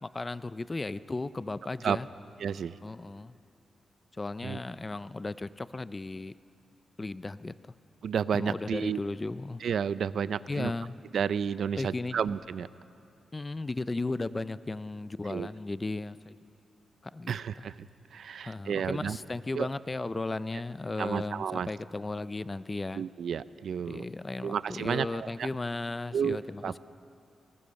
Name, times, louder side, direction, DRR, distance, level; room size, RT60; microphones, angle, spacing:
voice 1, 0.0-2.1 2.8-3.4 4.1-6.3 7.0-7.5 8.3-9.6 10.5-11.0 11.7-12.2 13.3-16.4 17.0-17.6 18.4-23.0 23.8-26.8, left 2 dB, 20° left, 16 dB, 0.4 m, -35 dB
voice 2, 2.4-2.8 4.4-4.6 8.0-9.0 9.6-10.7 11.1-12.7 15.3-15.5 17.3-17.8 18.1-19.2 19.5-19.7 21.0-21.7 22.9-24.1 24.4-25.1 25.4-25.5 26.1-26.4 26.6-26.7, right 7 dB, 70° right, 16 dB, 0.5 m, -31 dB
21.0 x 19.5 x 6.4 m, 2.7 s
wide cardioid pair, 140°, 0 cm